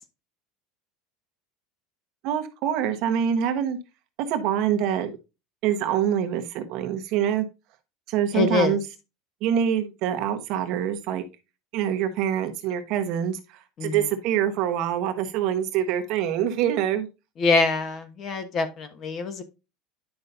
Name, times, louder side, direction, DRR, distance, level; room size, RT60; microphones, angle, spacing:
voice 1, 2.2-3.8 4.3-5.1 5.6-7.4 8.1-8.8 9.4-11.2 11.7-17.1, right 9 dB, 50° right, 7 dB, 1.2 m, -25 dB
voice 2, 8.3-8.8 13.8-14.0 17.4-19.4, left 4 dB, 30° left, 10 dB, 1.2 m, -24 dB
10.0 x 5.5 x 2.7 m, 0.28 s
supercardioid pair, 155°, 0 cm